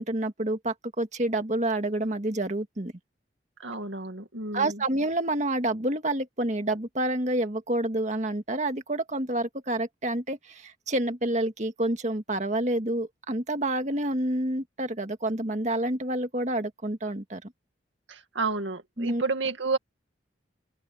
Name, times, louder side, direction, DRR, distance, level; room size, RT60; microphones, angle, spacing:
voice 1, 0.0-2.9 4.5-17.5 19.0-19.2, right 1 dB, 40° right, 1.9 m, -28 dB
voice 2, 3.6-4.8 18.1-19.8, right 3 dB, 80° right, 2.2 m, -30 dB
open air
head